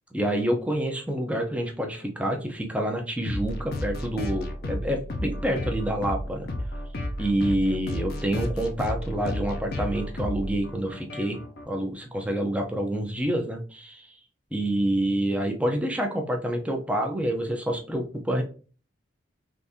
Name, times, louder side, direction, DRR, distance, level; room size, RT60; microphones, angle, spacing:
voice 1, 0.1-6.5 7.2-11.4 11.7-14.1 14.5-18.4, right 1 dB, 5° right, 2 dB, 0.5 m, -27 dB
sound 1, 3.3-11.6, left 1 dB, 55° left, 0.6 m, -33 dB
3.5 x 2.6 x 2.7 m, 0.38 s
head